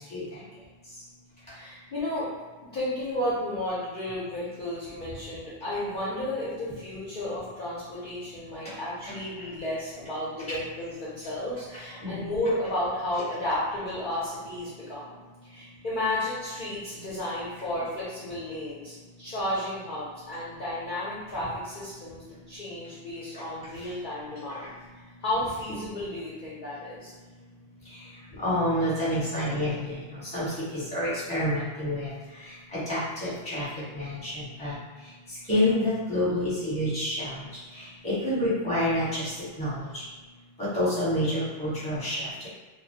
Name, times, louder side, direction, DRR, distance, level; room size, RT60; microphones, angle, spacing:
voice 1, 1.4-2.3 2.7-15.2 15.4-24.7 25.2-27.1, left 1 dB, 50° left, -8 dB, 0.6 m, -33 dB
voice 2, 28.4-30.0 30.2-32.1 32.7-33.6 33.9-34.7 35.5-37.3 38.0-39.3 39.6-40.0 40.6-42.5, left 1 dB, 5° left, -11 dB, 0.9 m, -28 dB
2.2 x 2.1 x 2.7 m, 1.3 s
omnidirectional pair, 1.3 m